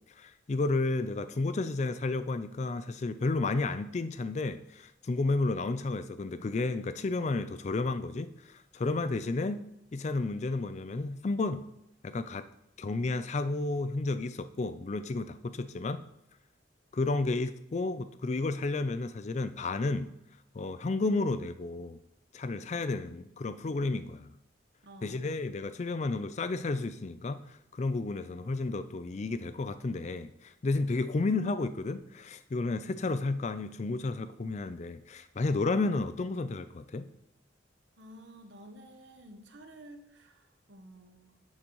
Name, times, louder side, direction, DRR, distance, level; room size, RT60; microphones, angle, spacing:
voice 1, 0.2-9.6 9.9-11.6 12.0-12.4 12.8-16.0 16.9-20.1 20.5-22.0 22.3-24.3 25.0-37.1, left 3 dB, 35° left, 12 dB, 0.4 m, -32 dB
voice 2, 24.8-25.4 38.0-41.4, right 1 dB, 65° right, 6 dB, 1.0 m, -52 dB
9.9 x 6.4 x 3.1 m, 0.82 s
head